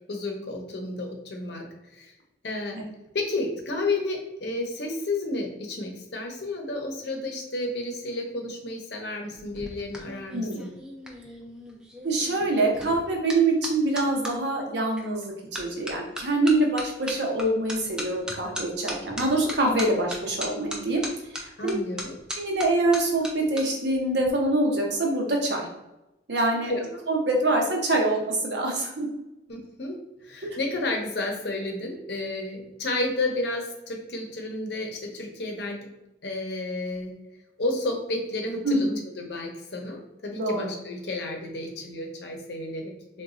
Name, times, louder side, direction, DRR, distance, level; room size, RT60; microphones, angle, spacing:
voice 1, 0.1-1.7 1.9-2.1 2.4-2.8 3.1-10.7 21.6-22.1 26.7-27.0 29.5-35.9 36.2-37.1 37.6-38.9 39.2-43.2, left 2 dB, 65° left, 2 dB, 0.7 m, -31 dB
sound 1, 9.3-14.3 15.0-15.2 15.5-23.6 23.9-24.3, equal, 5° right, 0.3 m, -37 dB
voice 2, 10.3-10.6 12.0-21.0 21.3-21.8 22.3-25.7 26.3-26.7 27.1-29.1 30.4-30.6 38.6-38.9 40.4-40.7, right 2 dB, 70° right, 1 dB, 0.7 m, -25 dB
3.9 x 2.2 x 2.4 m, 0.94 s
head